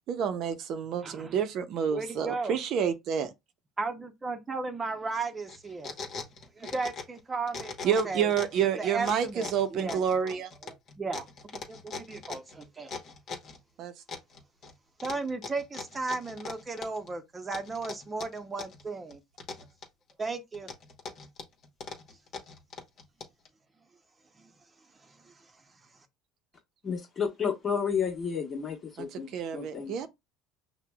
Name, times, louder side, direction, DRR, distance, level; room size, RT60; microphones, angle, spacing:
voice 1, 0.1-3.3 7.8-10.5 13.8-13.9 29.0-30.1, right 8 dB, 60° right, 0.6 m, -29 dB
voice 2, 1.0-1.4 1.9-2.6 3.8-5.9 6.4-8.3 8.6-10.4 10.6-11.3 11.7-12.9 15.0-19.2 20.2-20.7 24.3-26.1, right 3 dB, 25° right, 0.7 m, -36 dB
sound 1, 5.5-7.2 7.5-8.6 9.0-13.6 14.1-14.7 15.0-17.1 17.5-18.8 19.1-20.1 20.5-23.5, left 4 dB, 50° left, 1.0 m, -40 dB
voice 3, 26.8-30.1, left 6 dB, 30° left, 1.2 m, -31 dB
5.7 x 2.1 x 2.3 m
supercardioid pair, 95°, 0 cm